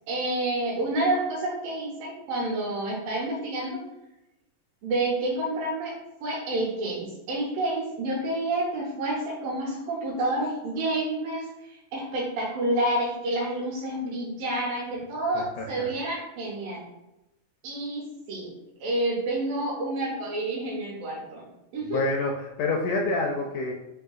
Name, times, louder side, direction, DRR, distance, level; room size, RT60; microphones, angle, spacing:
voice 1, 0.1-3.8 4.8-5.9 6.2-16.8 17.6-18.5 18.8-21.4 21.7-22.0, right 1 dB, 85° right, -6 dB, 2.7 m, -29 dB
voice 2, 15.4-15.9 21.8-23.7, left 2 dB, 80° left, 0 dB, 1.8 m, -28 dB
5.7 x 2.7 x 2.3 m, 0.95 s
omnidirectional pair, 3.8 m